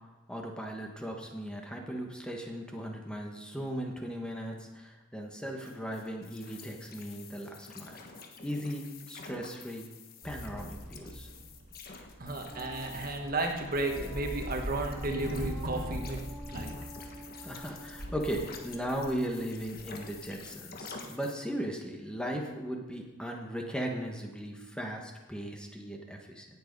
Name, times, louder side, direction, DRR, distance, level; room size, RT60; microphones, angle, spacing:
voice 1, 0.3-7.9 8.4-9.8 10.2-11.3 17.4-26.5, equal, 5° left, 1 dB, 1.3 m, -37 dB
sound 1, 5.6-21.3, left 5 dB, 45° left, 1.4 m, -49 dB
sound 2, 10.2-20.4, equal, 70° right, 2.1 m, -42 dB
voice 2, 12.2-16.7, right 2 dB, 45° right, 3 dB, 1.5 m, -33 dB
Wind instrument woodwind instrument, 12.5-19.4, equal, 20° left, 3.5 m, -50 dB
18.0 x 7.6 x 5.4 m, 1.1 s
head